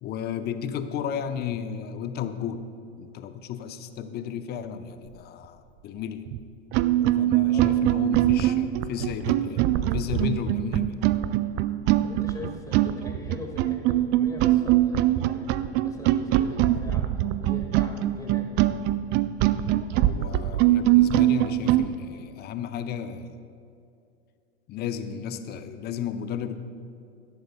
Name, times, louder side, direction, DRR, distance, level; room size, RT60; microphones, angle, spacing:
voice 1, 0.0-2.6 3.0-6.3 7.2-9.6 9.9-11.0 20.0-23.4 24.7-26.6, left 8 dB, 30° left, 10 dB, 0.7 m, -33 dB
sound 1, 6.3-6.4 6.7-21.9, right 13 dB, 30° right, 0.4 m, -22 dB
voice 2, 7.5-7.8 12.0-18.5, left 3 dB, 10° left, 2 dB, 1.8 m, -42 dB
17.5 x 12.5 x 2.2 m, 2.4 s
figure-of-eight pair, 90°, 34 cm